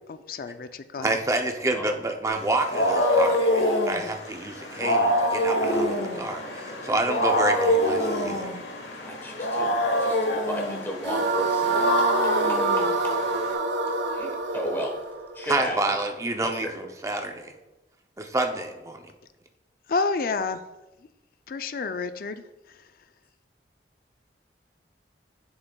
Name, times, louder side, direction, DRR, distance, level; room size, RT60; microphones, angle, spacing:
voice 1, 0.1-1.2 19.9-20.6 21.5-22.4, left 4 dB, 50° left, 11 dB, 0.4 m, -29 dB
voice 2, 1.0-8.6 15.5-17.5 18.2-19.1, right 2 dB, 15° right, 4 dB, 0.5 m, -28 dB
Wild animals, 2.3-13.5, left 1 dB, 80° left, 1.2 m, -25 dB
voice 3, 9.0-11.8 12.5-12.6 14.1-15.0 15.3-15.8 16.4-16.7, equal, 15° left, 0 dB, 1.1 m, -33 dB
sound 1, 11.0-16.2, right 3 dB, 85° right, 0.6 m, -26 dB
7.9 x 6.9 x 2.3 m, 1.0 s
head